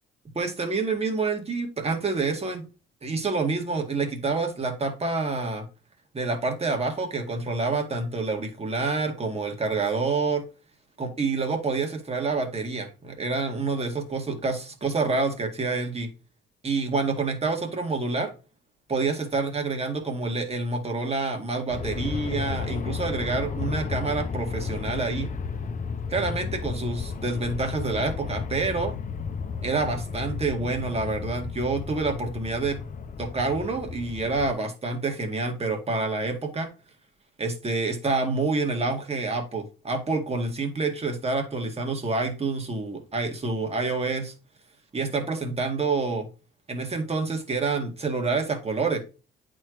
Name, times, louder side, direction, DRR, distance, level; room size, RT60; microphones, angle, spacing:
voice 1, 0.4-2.6 3.0-5.7 6.1-10.5 11.0-16.1 16.6-18.3 18.9-25.3 26.1-28.9 29.6-32.8 33.2-36.7 37.4-44.3 44.9-46.3 46.7-49.0, right 3 dB, 30° right, 4 dB, 1.9 m, -27 dB
Aircraft, 21.7-34.5, left 5 dB, 40° left, 0.7 m, -33 dB
8.6 x 4.5 x 3.1 m, 0.33 s
cardioid pair, 90°, 20 cm